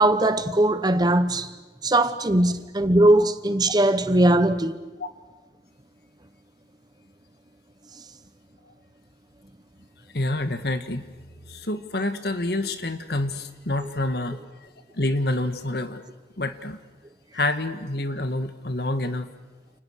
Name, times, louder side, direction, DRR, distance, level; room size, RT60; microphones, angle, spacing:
voice 1, 0.0-1.5 1.8-4.8, right 1 dB, 20° right, 1.0 m, -20 dB
voice 2, 10.1-11.0 11.5-14.7 14.9-16.0 16.4-16.8 17.3-19.3, left 2 dB, 60° left, 1.8 m, -27 dB
30.0 x 29.5 x 6.6 m
head